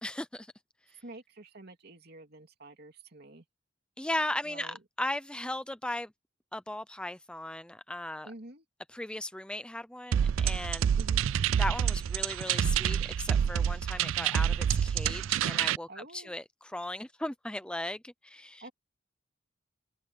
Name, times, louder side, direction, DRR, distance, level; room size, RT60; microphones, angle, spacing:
voice 1, 0.0-0.5 4.0-6.1 6.5-8.3 8.9-10.9 11.6-16.4 16.7-18.6, left 1 dB, 5° left, 0.5 m, -37 dB
voice 2, 0.9-3.4 4.4-4.8 8.2-8.6 11.0-11.3 15.9-16.3 18.6-18.7, right 2 dB, 55° right, 2.8 m, -48 dB
sound 1, 10.1-15.8, right 8 dB, 80° right, 0.3 m, -28 dB
head